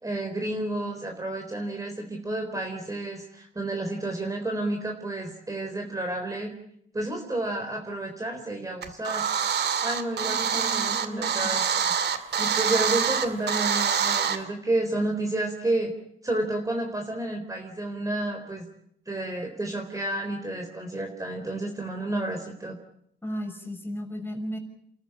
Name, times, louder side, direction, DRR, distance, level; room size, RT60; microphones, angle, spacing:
voice 1, 0.0-6.5 6.9-9.3 9.8-11.9 12.4-15.9 16.2-18.7 19.1-22.8, right 2 dB, 15° right, 3 dB, 3.9 m, -31 dB
sound 1, 8.8-14.4, right 7 dB, 55° right, 2.3 m, -25 dB
voice 2, 10.2-11.6 23.2-24.6, equal, 10° left, 5 dB, 5.9 m, -35 dB
29.5 x 13.5 x 8.8 m, 0.70 s
cardioid pair, 90°, 20 cm